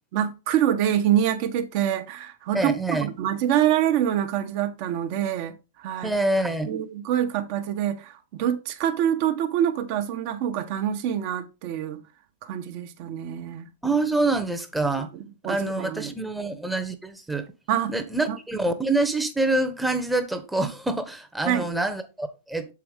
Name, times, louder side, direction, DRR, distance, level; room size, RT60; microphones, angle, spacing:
voice 1, 0.1-6.1 6.7-12.0 12.4-13.7 15.4-16.1 17.7-17.9 18.3-18.4 21.5-21.7, right 10 dB, 50° right, 0.9 m, -25 dB
voice 2, 2.5-3.1 6.0-6.7 13.8-15.1 15.4-17.5 17.9-22.7, right 2 dB, 5° right, 0.9 m, -26 dB
6.9 x 4.8 x 3.5 m
hypercardioid pair, 105°, 0 cm